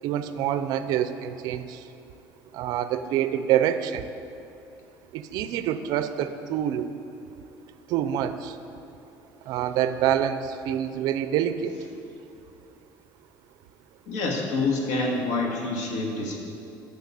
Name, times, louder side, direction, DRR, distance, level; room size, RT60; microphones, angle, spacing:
voice 1, 0.0-1.9 2.5-4.1 5.1-6.9 7.9-8.6 9.5-11.8, right 10 dB, 60° right, 11 dB, 0.6 m, -26 dB
voice 2, 14.1-16.4, left 3 dB, 80° left, -1 dB, 2.3 m, -27 dB
10.5 x 6.6 x 8.5 m, 2.7 s
cardioid pair, 170°, 8 cm